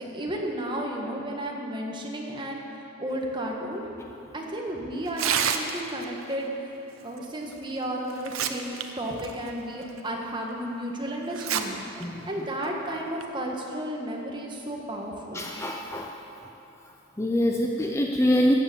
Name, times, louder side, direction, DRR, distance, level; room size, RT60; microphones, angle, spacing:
voice 1, 0.0-2.6 3.0-3.8 4.3-6.5 7.0-11.8 12.2-15.4, right 1 dB, 25° right, 0 dB, 1.5 m, -33 dB
Tearing, 5.1-6.0 7.5-7.6 8.1-8.8 9.2-9.3 10.0-10.1 11.3-11.6 12.0-12.1 13.0-13.2, right 8 dB, 85° right, 0.8 m, -27 dB
voice 2, 11.9-12.3 15.3-16.1 16.4-16.5 17.2-18.5, equal, 15° left, 1 dB, 0.5 m, -25 dB
14.0 x 9.4 x 7.0 m, 2.9 s
head